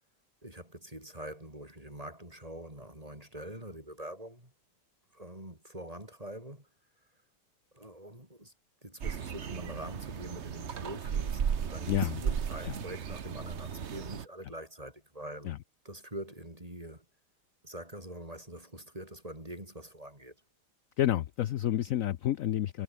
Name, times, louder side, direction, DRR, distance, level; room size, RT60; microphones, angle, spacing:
voice 1, 0.4-4.5 5.1-6.7 7.7-8.5 8.8-15.5 15.8-17.1 17.6-20.4, right 1 dB, 20° right, 7.0 m, -44 dB
sound 1, 9.0-14.3, right 7 dB, 45° right, 1.2 m, -35 dB
voice 2, 11.9-12.2 12.6-12.7 15.4-15.6 21.0-22.8, left 12 dB, 65° left, 0.9 m, -29 dB
omnidirectional pair, 1.8 m